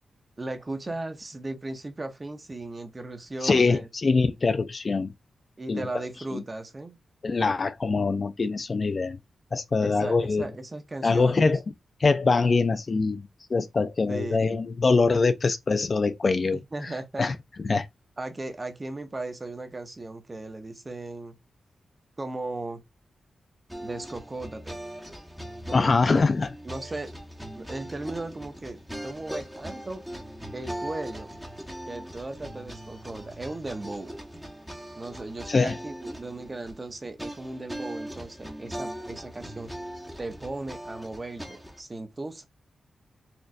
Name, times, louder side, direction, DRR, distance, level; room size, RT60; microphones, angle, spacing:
voice 1, 0.4-3.9 5.6-7.0 9.8-11.5 14.1-14.6 16.5-17.3 18.2-21.4 22.2-22.8 23.8-24.8 25.7-26.3 26.6-27.1 27.5-30.0 30.5-31.3 31.9-34.1 35.0-39.7 40.2-42.5, right 2 dB, 30° right, 0.8 m, -37 dB
voice 2, 3.4-5.1 5.7-5.9 6.3-6.4 7.2-9.2 9.5-10.5 11.0-11.6 12.0-13.2 13.5-16.9 17.2-17.3 17.7-17.9 25.7-26.5 35.5-35.7, left 4 dB, 40° left, 0.4 m, -23 dB
sound 1, 23.7-41.8, equal, 5° right, 1.0 m, -40 dB
4.3 x 2.5 x 2.4 m
cardioid pair, 90°, 0 cm